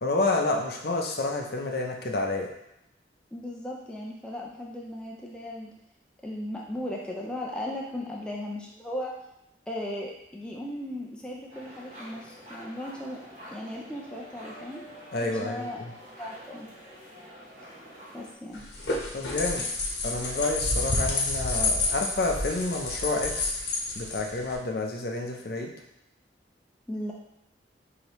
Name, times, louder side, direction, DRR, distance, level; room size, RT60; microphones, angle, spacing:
voice 1, 0.0-2.5 15.1-15.9 19.1-23.6 23.9-25.7, left 2 dB, 60° left, 2 dB, 0.6 m, -29 dB
voice 2, 3.3-5.7 6.2-9.1 9.7-13.2 13.5-14.8 15.2-16.7 18.1-18.6 26.9-27.1, left 1 dB, 5° left, -3 dB, 0.4 m, -37 dB
sound 1, 11.5-18.3, equal, 45° right, 1.3 m, -47 dB
sound 2, 18.5-24.6, left 2 dB, 80° left, 1.0 m, -29 dB
5.0 x 2.7 x 3.0 m, 0.83 s
head